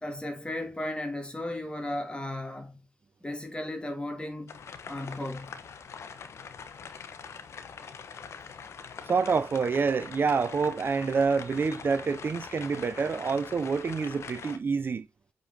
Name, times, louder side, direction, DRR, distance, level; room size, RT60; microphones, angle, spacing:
voice 1, 0.0-2.8 3.2-5.6, left 1 dB, 20° left, 3.0 m, -35 dB
sound 1, 4.5-14.6, left 6 dB, 65° left, 1.2 m, -43 dB
voice 2, 9.1-15.1, right 5 dB, 50° right, 0.5 m, -27 dB
8.7 x 5.3 x 2.9 m
supercardioid pair, 55°, 5 cm